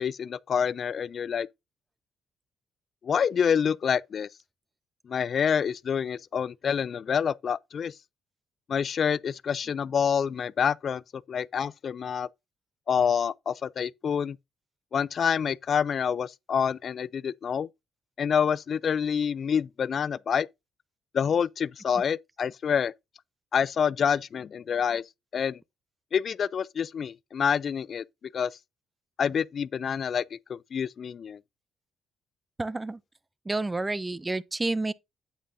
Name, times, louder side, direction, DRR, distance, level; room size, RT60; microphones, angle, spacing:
voice 1, 0.0-1.5 3.0-4.3 5.1-7.9 8.7-11.0 11.3-12.3 12.9-14.4 14.9-17.7 18.2-20.5 21.1-22.9 23.5-25.0 25.3-25.6 26.1-28.0 28.3-28.6 29.2-31.4, left 7 dB, 50° left, 0.4 m, -27 dB
voice 2, 32.6-33.0 33.5-34.9, right 2 dB, 20° right, 0.6 m, -29 dB
8.8 x 8.7 x 2.6 m
cardioid pair, 90°, 0 cm